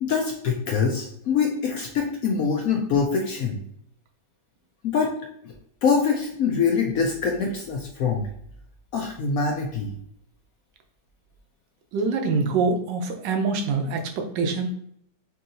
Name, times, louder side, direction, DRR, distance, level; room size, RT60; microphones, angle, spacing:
voice 1, 0.0-3.6 4.8-5.1 5.8-8.3 8.9-9.9, left 5 dB, 70° left, 1 dB, 0.8 m, -24 dB
voice 2, 11.9-14.7, right 4 dB, 85° right, 4 dB, 1.3 m, -25 dB
4.7 x 2.8 x 2.6 m, 0.70 s
omnidirectional pair, 1.9 m